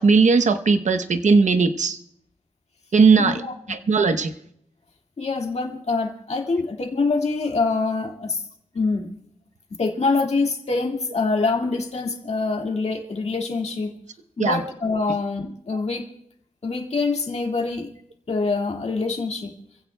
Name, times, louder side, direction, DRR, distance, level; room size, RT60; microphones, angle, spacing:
voice 1, 0.0-2.0 2.9-3.4 3.7-4.3 14.4-14.6, right 4 dB, 65° right, 8 dB, 0.8 m, -18 dB
voice 2, 3.2-3.5 5.2-8.4 8.7-9.1 9.8-13.9 14.4-16.1 16.6-17.9 18.3-19.5, left 3 dB, 55° left, 1 dB, 1.9 m, -25 dB
27.5 x 16.0 x 2.2 m, 0.75 s
wide cardioid pair, 95°, 13 cm